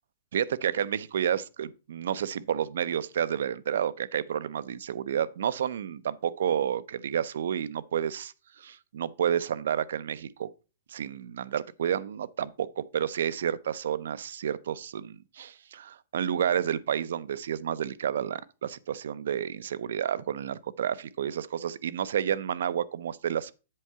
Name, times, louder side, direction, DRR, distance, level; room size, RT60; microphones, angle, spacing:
voice 1, 0.3-10.5 10.9-23.5, right 9 dB, 65° right, 0.5 m, -30 dB
7.6 x 4.5 x 5.5 m
hypercardioid pair, 180°, 0 cm